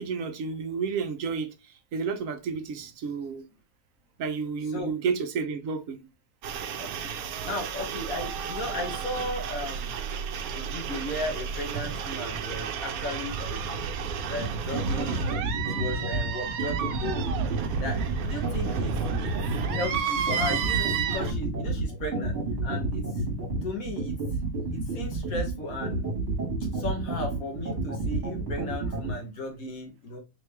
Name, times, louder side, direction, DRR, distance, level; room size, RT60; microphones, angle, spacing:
voice 1, 0.0-1.5 1.9-3.4 4.2-6.0, right 5 dB, 70° right, 1.1 m, -31 dB
sound 1, 6.4-21.3, right 7 dB, 85° right, 1.1 m, -32 dB
voice 2, 6.8-7.1 7.4-10.0 10.5-13.7 14.2-17.4 17.8-18.9 19.2-19.3 19.7-23.2 23.6-24.2 24.7-26.1 26.7-30.2, left 2 dB, 75° left, 1.5 m, -36 dB
sound 2, 14.4-29.1, right 3 dB, 55° right, 1.8 m, -30 dB
4.0 x 3.2 x 3.2 m
omnidirectional pair, 1.5 m